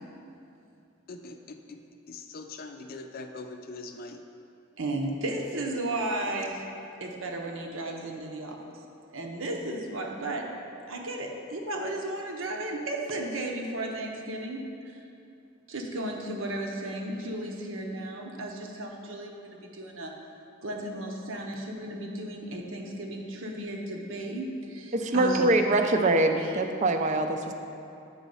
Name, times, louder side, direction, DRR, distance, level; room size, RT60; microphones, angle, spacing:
voice 1, 1.1-1.6 2.1-4.2 22.5-22.6, left 3 dB, 50° left, 5 dB, 0.5 m, -42 dB
voice 2, 4.8-6.6 7.0-8.6 9.1-10.5 10.9-14.9 15.7-20.1 20.6-25.5 25.8-25.9 26.4-26.6, right 1 dB, 80° right, 1 dB, 0.8 m, -34 dB
voice 3, 24.9-27.5, right 2 dB, 35° right, 6 dB, 0.4 m, -24 dB
8.0 x 4.1 x 5.5 m, 2.7 s
head